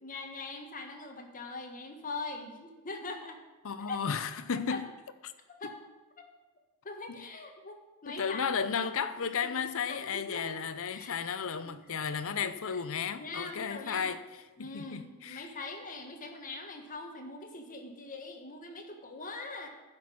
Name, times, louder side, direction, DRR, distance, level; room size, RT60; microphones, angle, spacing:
voice 1, 0.0-3.4 3.9-4.0 4.7-4.8 5.6-5.8 6.8-8.5 8.8-8.9 9.4-9.5 9.9-10.6 10.9-11.3 11.6-11.8 12.3-12.8 13.2-14.1 14.6-19.7, left 3 dB, 40° left, 1.5 m, -42 dB
voice 2, 3.6-4.9 8.1-14.2 14.6-15.5, left 6 dB, 65° left, 0.7 m, -34 dB
10.5 x 6.1 x 8.6 m
head